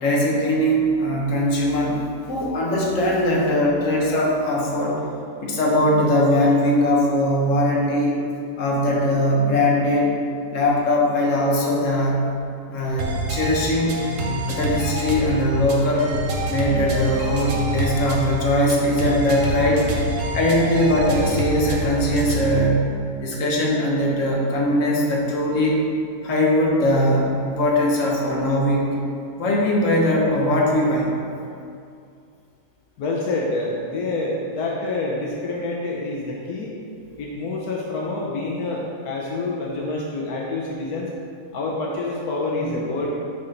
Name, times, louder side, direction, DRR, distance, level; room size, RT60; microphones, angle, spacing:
voice 1, 0.0-2.0 2.3-5.0 5.4-8.2 8.6-10.1 10.5-12.3 12.7-14.0 14.5-16.2 16.5-19.9 20.3-22.9 23.2-25.8 26.2-28.9 29.4-31.1 42.6-42.7, left 1 dB, 55° left, -2 dB, 1.5 m, -20 dB
sound 1, 13.0-22.6, right 1 dB, 60° right, 1.3 m, -26 dB
voice 2, 33.0-36.7 37.2-41.1 41.5-43.1, left 2 dB, 80° left, -3 dB, 1.4 m, -27 dB
7.7 x 4.4 x 5.1 m, 2.4 s
omnidirectional pair, 1.6 m